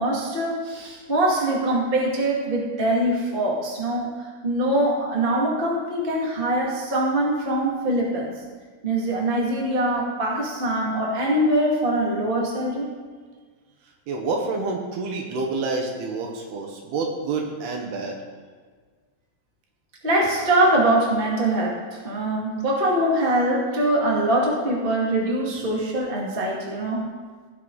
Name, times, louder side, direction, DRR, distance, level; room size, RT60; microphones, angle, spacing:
voice 1, 0.0-8.3 8.8-12.9 20.0-27.0, right 1 dB, 20° right, -4 dB, 1.3 m, -23 dB
voice 2, 14.1-18.2, right 3 dB, 75° right, 1 dB, 3.0 m, -28 dB
17.0 x 6.2 x 4.0 m, 1.5 s
omnidirectional pair, 4.8 m